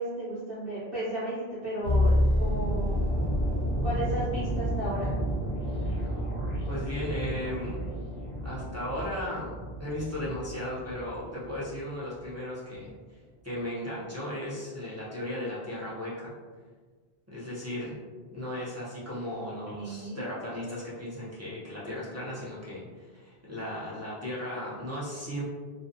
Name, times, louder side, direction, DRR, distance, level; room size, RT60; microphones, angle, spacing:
voice 1, 0.0-3.2 3.8-5.2 19.5-20.2, right 1 dB, 60° right, -11 dB, 0.9 m, -34 dB
sound 1, 1.8-11.8 12.1-12.3, equal, 45° left, 0.8 m, -30 dB
voice 2, 6.7-7.8 8.4-9.5 9.8-13.2 13.4-16.3 17.3-18.0 18.3-25.4, left 1 dB, 25° right, -8 dB, 0.3 m, -36 dB
2.4 x 2.2 x 2.5 m, 1.5 s
omnidirectional pair, 1.1 m